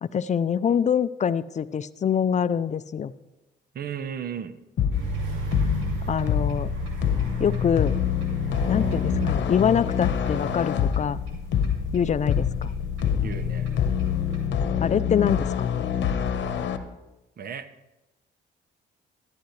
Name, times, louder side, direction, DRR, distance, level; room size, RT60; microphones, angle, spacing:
voice 1, 0.0-3.1 6.1-6.7 7.4-8.0 8.7-11.2 11.9-12.7 14.8-15.5, left 7 dB, 35° left, 16 dB, 0.4 m, -25 dB
voice 2, 3.7-4.6 13.2-13.8 17.4-17.7, right 7 dB, 50° right, 12 dB, 0.9 m, -34 dB
sound 1, 4.8-16.8, left 8 dB, 65° left, 0.9 m, -26 dB
sound 2, 4.9-14.5, right 3 dB, 90° right, 2.5 m, -36 dB
13.0 x 11.5 x 3.2 m, 1.0 s
cardioid pair, 90°, 20 cm